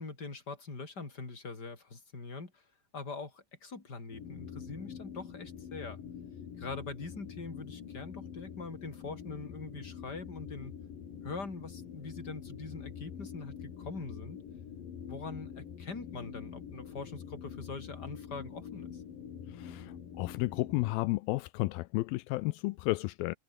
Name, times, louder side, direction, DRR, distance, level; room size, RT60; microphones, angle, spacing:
voice 1, 0.0-2.6 2.9-6.0 6.6-10.7 11.2-14.4 15.1-19.0, left 4 dB, 25° left, 4.7 m, -43 dB
sound 1, 4.1-20.9, left 8 dB, 70° left, 4.5 m, -45 dB
voice 2, 19.5-23.4, left 21 dB, 85° left, 2.4 m, -32 dB
omnidirectional pair, 4.2 m